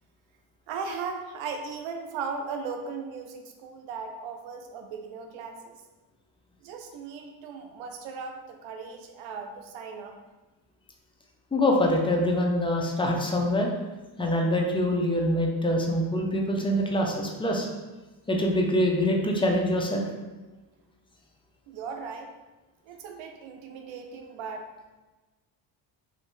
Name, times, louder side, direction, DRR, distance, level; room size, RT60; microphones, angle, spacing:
voice 1, 0.7-5.8 6.6-10.2 21.7-22.3 22.8-24.7, right 5 dB, 80° right, 4 dB, 0.6 m, -37 dB
voice 2, 11.5-13.7 14.2-17.7 18.3-20.1, left 1 dB, 10° left, 0 dB, 0.6 m, -24 dB
3.1 x 2.8 x 3.1 m, 1.2 s
cardioid pair, 80°, 46 cm